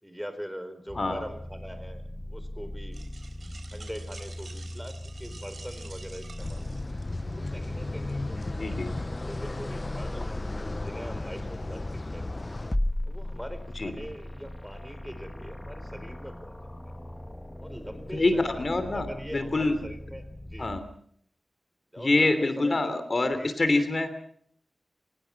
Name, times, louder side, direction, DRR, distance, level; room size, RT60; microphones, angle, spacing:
voice 1, 0.0-3.0 3.7-6.7 7.4-8.8 9.3-10.3 10.8-12.4 13.1-16.7 17.6-18.6 18.9-20.7 21.9-22.9 23.4-23.5, equal, 5° right, 10 dB, 4.5 m, -42 dB
sound 1, 0.9-20.8, left 1 dB, 20° left, 1.9 m, -38 dB
sound 2, 2.9-7.3, right 3 dB, 70° right, 3.9 m, -49 dB
sound 3, 6.4-12.8, left 2 dB, 40° left, 0.8 m, -35 dB
voice 2, 8.5-8.9 13.7-13.9 18.1-19.1 19.3-19.8 20.6-20.8 22.0-24.1, left 2 dB, 55° left, 11 dB, 3.1 m, -25 dB
24.0 x 19.5 x 6.0 m, 0.63 s
wide cardioid pair, 55°, 0 cm